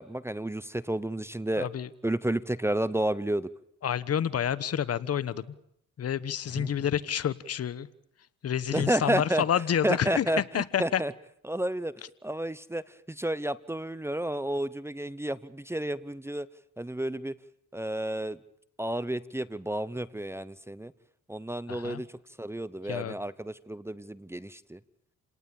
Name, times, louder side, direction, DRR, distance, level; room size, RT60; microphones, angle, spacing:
voice 1, 0.0-1.7 2.0-3.5 6.5-6.7 8.7-9.4 9.8-11.1 11.4-11.9 12.2-16.5 16.8-17.3 17.7-18.4 18.8-20.9 21.3-22.1 22.4-24.8, right 1 dB, 10° right, 18 dB, 0.9 m, -31 dB
voice 2, 1.6-1.9 3.8-5.4 6.0-7.9 8.4-11.0 21.7-22.0 22.8-23.1, left 9 dB, 55° left, 17 dB, 1.2 m, -29 dB
29.0 x 18.5 x 8.8 m, 0.74 s
cardioid pair, 90°, 30 cm